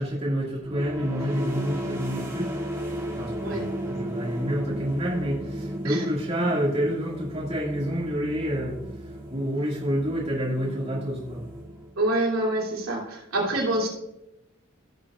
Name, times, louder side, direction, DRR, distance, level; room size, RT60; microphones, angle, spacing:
voice 1, 0.0-2.5 3.1-11.4, equal, 30° right, -4 dB, 2.1 m, -28 dB
sound 1, 0.6-12.2, right 1 dB, 15° right, 2.4 m, -35 dB
voice 2, 12.0-13.9, right 1 dB, 80° right, -3 dB, 2.8 m, -26 dB
16.5 x 6.8 x 2.4 m, 0.88 s
head